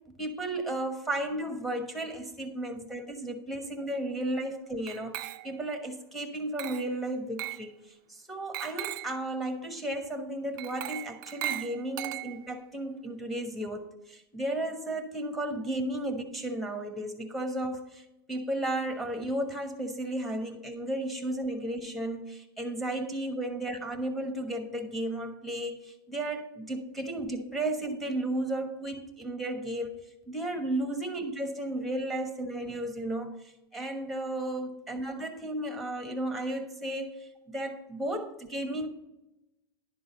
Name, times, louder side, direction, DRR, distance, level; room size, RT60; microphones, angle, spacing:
voice 1, 0.2-7.7 8.1-30.0 30.3-38.9, right 1 dB, ahead, 5 dB, 1.1 m, -34 dB
Glass, 4.9-5.7 6.6-7.0 7.4-7.7 8.5-9.2 10.6-12.6, right 15 dB, 55° right, 0.4 m, -37 dB
11.0 x 3.9 x 6.6 m, 0.93 s
supercardioid pair, 140°, 13 cm